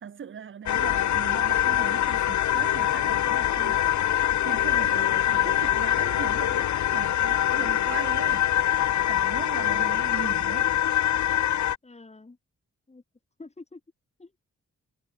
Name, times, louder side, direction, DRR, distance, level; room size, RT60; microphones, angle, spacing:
voice 1, 0.0-3.8 4.4-8.5 9.1-10.7, right 7 dB, 45° right, 0.7 m, -39 dB
sound 1, 0.7-11.8, left 11 dB, 75° left, 0.6 m, -24 dB
voice 2, 9.6-10.0 11.8-12.4 12.9-13.0 13.4-13.8 14.2-14.4, left 3 dB, 20° left, 4.5 m, -47 dB
wide cardioid pair, 155°, 29 cm